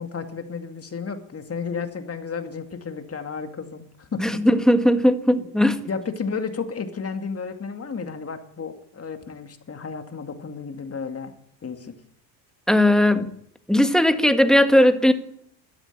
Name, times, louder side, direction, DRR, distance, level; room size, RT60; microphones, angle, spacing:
voice 1, 0.0-4.4 5.4-5.5 5.9-11.3 11.6-11.9, left 5 dB, 30° left, 2.4 m, -32 dB
voice 2, 4.2-5.8 12.7-13.3 13.7-15.1, left 1 dB, ahead, 1.6 m, -18 dB
12.5 x 11.0 x 9.4 m
hypercardioid pair, 75°, 50 cm